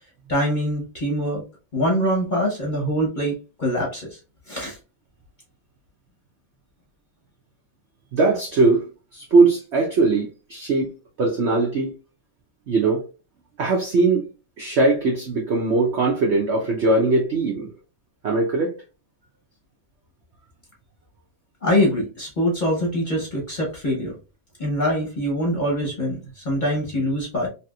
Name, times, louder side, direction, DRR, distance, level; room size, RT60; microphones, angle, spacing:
voice 1, 0.3-1.4 1.7-4.2 4.5-4.8 21.6-24.1 24.6-27.5, equal, 35° left, 0.8 m, -24 dB
voice 2, 8.1-10.9 11.2-11.9 12.7-13.0 13.6-14.2 14.6-17.7 18.2-18.7, right 3 dB, 80° right, 0.6 m, -20 dB
3.3 x 2.8 x 2.2 m
omnidirectional pair, 1.9 m